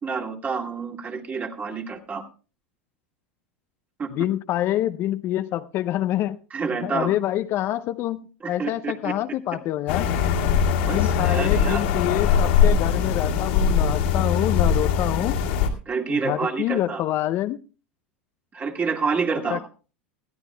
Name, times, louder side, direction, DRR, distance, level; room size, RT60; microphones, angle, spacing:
voice 1, 0.0-2.2 4.0-4.1 6.5-7.2 8.4-9.1 10.9-11.8 15.9-17.0 18.5-19.6, right 5 dB, 30° right, 2.2 m, -28 dB
voice 2, 4.1-6.4 6.8-10.1 10.9-15.4 16.1-17.6 19.5-19.6, left 13 dB, 45° left, 0.5 m, -26 dB
sound 1, 9.9-15.7, left 7 dB, 70° left, 2.1 m, -21 dB
20.0 x 14.0 x 2.2 m
hypercardioid pair, 90°, 6 cm